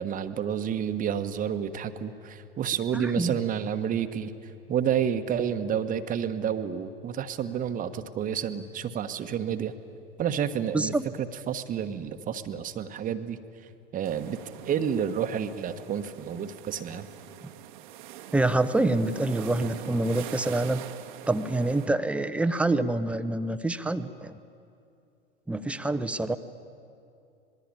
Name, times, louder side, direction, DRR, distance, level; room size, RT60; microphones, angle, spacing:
voice 1, 0.0-4.3 4.7-9.7 10.2-13.4 13.9-14.4 14.6-17.1, right 8 dB, 25° right, 8 dB, 1.3 m, -30 dB
voice 2, 2.9-3.4 10.7-11.1 18.3-20.8 21.3-24.4 25.5-26.4, right 2 dB, 5° right, 11 dB, 0.9 m, -26 dB
sound 1, 14.0-21.9, right 12 dB, 55° right, 1.4 m, -43 dB
27.0 x 21.0 x 8.9 m, 2.6 s
figure-of-eight pair, 85°, 30 cm